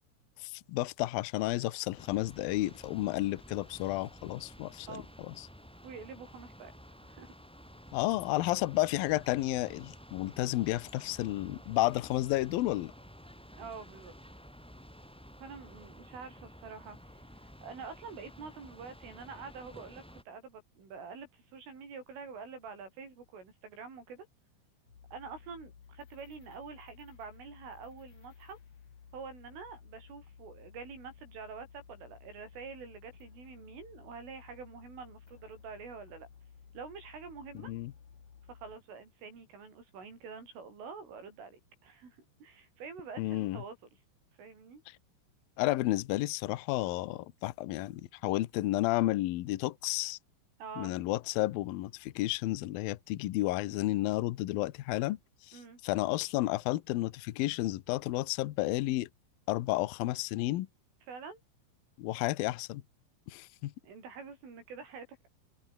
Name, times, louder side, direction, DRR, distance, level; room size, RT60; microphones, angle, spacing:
voice 1, 0.4-5.5 7.9-12.9 37.6-37.9 43.2-43.6 44.9-45.0 45.6-50.2 50.8-55.2 55.5-59.1 59.5-60.7 62.0-62.8 63.3-63.7, left 17 dB, 80° left, 2.1 m, -32 dB
sound 1, 2.0-20.2, equal, ahead, 5.3 m, -52 dB
voice 2, 5.8-6.7 7.1-7.3 13.6-14.2 15.4-17.2 17.6-24.3 25.1-28.6 29.1-36.3 36.7-37.7 38.5-43.8 44.4-44.8 50.6-50.9 55.5-55.8 61.1-61.4 63.8-65.3, right 5 dB, 80° right, 10.5 m, -46 dB
sound 2, 24.8-38.8, left 7 dB, 40° left, 3.7 m, -56 dB
omnidirectional pair, 5.7 m